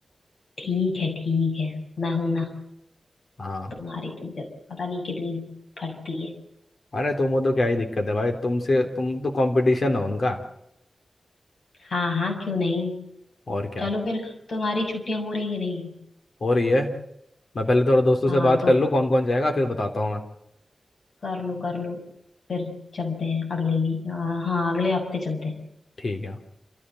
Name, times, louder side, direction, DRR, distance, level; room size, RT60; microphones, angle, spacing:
voice 1, 0.6-2.6 3.7-5.5 5.8-6.3 11.8-13.1 13.8-16.0 18.3-18.7 21.2-22.0 22.5-25.6, left 4 dB, 75° left, 1 dB, 7.4 m, -28 dB
voice 2, 3.4-3.7 6.9-10.4 13.5-13.9 16.4-16.9 17.6-20.2 26.0-26.4, left 1 dB, 55° left, 4 dB, 3.5 m, -22 dB
29.0 x 14.5 x 7.9 m, 0.81 s
wide cardioid pair, 115°, 0 cm